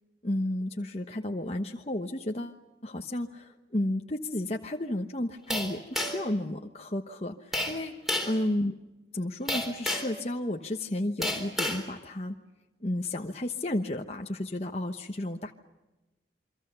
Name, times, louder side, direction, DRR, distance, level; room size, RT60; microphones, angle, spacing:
voice 1, 0.2-8.0 8.2-8.7 9.1-12.4 12.8-15.5, left 1 dB, 35° left, 3 dB, 1.1 m, -32 dB
sound 1, 5.5-6.3 7.5-7.8 8.1-8.4 9.5-10.2 11.2-11.8, left 1 dB, ahead, 3.6 m, -30 dB
28.5 x 24.0 x 6.9 m, 1.0 s
head